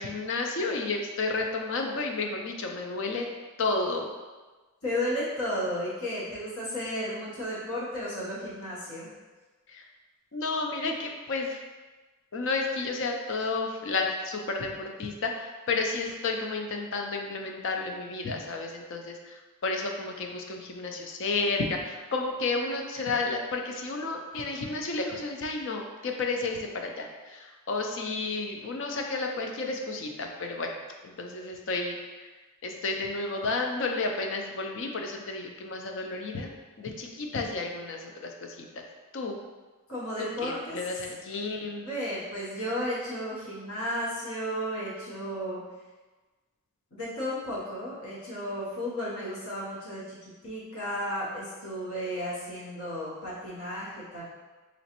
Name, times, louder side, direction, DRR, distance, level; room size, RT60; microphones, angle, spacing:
voice 1, 0.0-3.3 3.6-4.1 9.7-9.8 10.3-11.6 12.3-30.7 31.0-32.0 32.6-36.5 36.8-38.8 39.1-39.4 40.2-41.9, left 3 dB, 55° left, 3 dB, 0.4 m, -31 dB
voice 2, 4.8-9.1 39.9-40.8 41.8-45.6 46.9-54.2, equal, 75° left, -8 dB, 1.1 m, -33 dB
3.9 x 3.1 x 2.9 m, 1.3 s
head